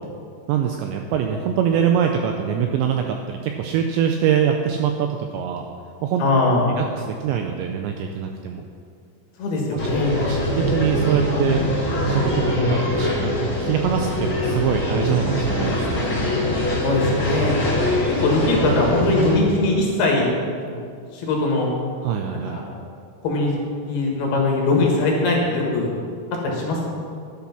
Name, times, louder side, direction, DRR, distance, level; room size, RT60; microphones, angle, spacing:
voice 1, 0.5-5.7 6.0-6.2 6.8-8.6 9.7-9.8 10.3-11.6 12.1-16.0 22.0-22.6, right 8 dB, 85° right, 4 dB, 2.6 m, -24 dB
voice 2, 6.2-6.7 9.4-10.2 12.5-12.7 16.8-17.6 18.2-20.3 20.7-20.8 21.1-21.7 22.3-22.7 23.2-23.6 23.9-25.9 26.4-27.0, left 2 dB, 60° left, -1 dB, 3.1 m, -21 dB
sound 1, 9.8-19.4, left 1 dB, 25° left, 1.9 m, -23 dB
11.5 x 10.5 x 5.9 m, 2.3 s
omnidirectional pair, 5.8 m